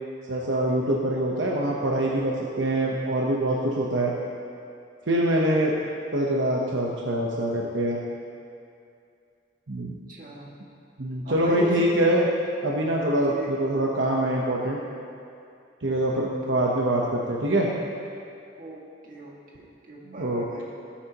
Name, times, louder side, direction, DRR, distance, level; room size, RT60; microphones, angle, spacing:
voice 1, 0.3-4.1 5.1-5.7 6.1-8.0 9.7-9.9 11.0-12.3 12.6-14.8 15.8-17.7 20.2-20.6, right 1 dB, 75° right, -3 dB, 1.1 m, -24 dB
voice 2, 10.1-10.5 11.2-12.1 13.3-13.5 15.8-16.3 18.6-20.6, right 2 dB, 45° right, -4 dB, 2.0 m, -37 dB
18.5 x 8.6 x 3.0 m, 2.5 s
head